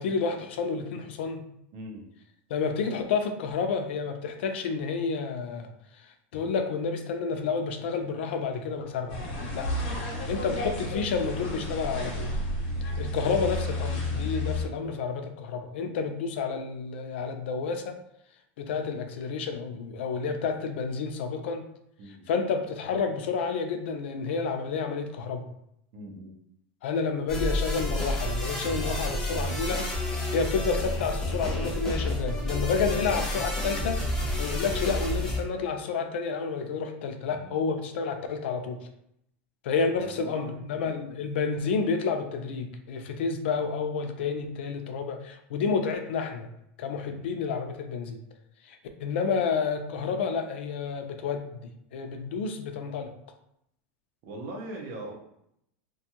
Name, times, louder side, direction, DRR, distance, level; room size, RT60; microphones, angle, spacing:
voice 1, 0.0-1.4 2.5-5.7 6.3-9.2 9.5-9.7 10.3-12.3 13.0-18.0 18.6-21.6 22.3-25.5 26.8-29.9 30.3-34.0 34.4-38.9 39.6-46.5 46.8-48.2 48.7-53.1, left 5 dB, 80° left, 6 dB, 0.4 m, -30 dB
voice 2, 1.7-2.1 22.0-22.3 25.9-26.4 37.3-37.7 39.9-41.0 47.0-47.3 54.2-55.1, right 2 dB, 40° right, 0 dB, 0.7 m, -41 dB
sound 1, 9.1-14.6, left 1 dB, 60° left, 0.9 m, -31 dB
sound 2, 27.3-35.4, left 1 dB, 10° left, 0.5 m, -30 dB
2.5 x 2.3 x 2.8 m, 0.75 s
supercardioid pair, 165°, 6 cm